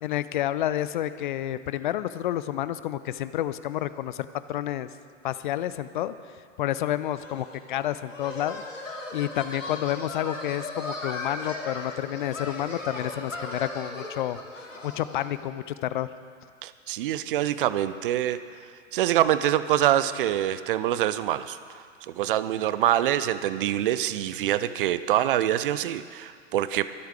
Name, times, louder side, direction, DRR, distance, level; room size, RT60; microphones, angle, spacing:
voice 1, 0.0-4.9 5.2-6.1 6.6-8.6 9.1-16.1, left 12 dB, 40° left, 14 dB, 0.5 m, -30 dB
sound 1, 7.2-15.3, left 2 dB, 80° left, 2.0 m, -37 dB
voice 2, 16.6-18.4 18.9-26.9, right 12 dB, 45° right, 14 dB, 0.5 m, -25 dB
23.5 x 8.1 x 4.7 m, 2.1 s
figure-of-eight pair, 95°, 38 cm